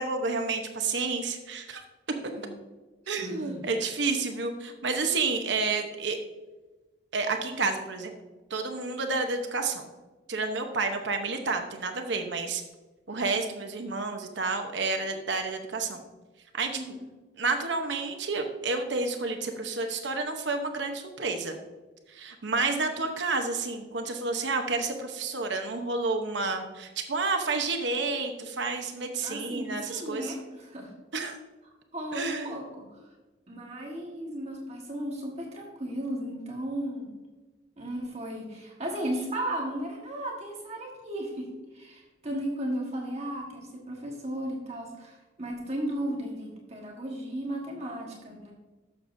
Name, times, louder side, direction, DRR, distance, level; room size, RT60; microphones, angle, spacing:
voice 1, 0.0-1.8 3.1-6.2 7.1-8.1 8.5-9.9 10.3-12.6 13.1-16.0 16.5-17.0 17.4-21.6 22.1-30.3 31.1-31.4 32.1-32.6, right 3 dB, 70° right, 5 dB, 0.8 m, -30 dB
voice 2, 3.2-3.5 16.7-17.1 29.2-30.9 31.9-32.9 33.5-37.1 37.8-41.5 41.7-48.5, right 1 dB, 35° right, -1 dB, 1.4 m, -35 dB
11.5 x 7.1 x 2.6 m, 1.2 s
head